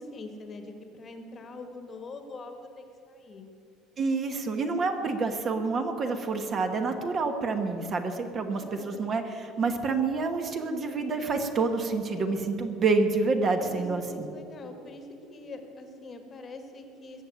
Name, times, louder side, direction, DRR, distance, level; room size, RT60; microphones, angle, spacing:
voice 1, 0.0-3.5 8.5-9.3 13.5-17.2, left 2 dB, 25° left, 6 dB, 1.4 m, -44 dB
voice 2, 4.0-14.3, right 4 dB, 25° right, 6 dB, 1.1 m, -28 dB
21.5 x 7.3 x 9.1 m, 2.8 s
cardioid pair, 175°, 0 cm